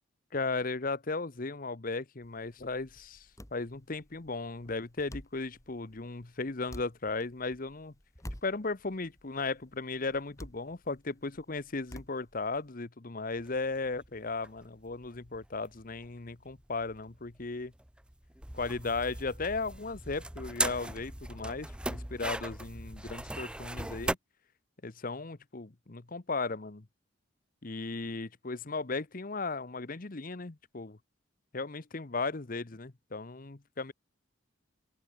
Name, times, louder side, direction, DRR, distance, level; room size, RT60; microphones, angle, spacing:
voice 1, 0.3-3.3 3.5-7.9 8.4-17.7 18.5-24.2 24.8-26.9 27.6-31.0 31.5-33.9, left 3 dB, 45° left, 1.0 m, -36 dB
sound 1, 2.2-12.7, equal, 15° left, 3.0 m, -51 dB
sound 2, 13.4-24.1, right 1 dB, 5° right, 0.6 m, -39 dB
open air
head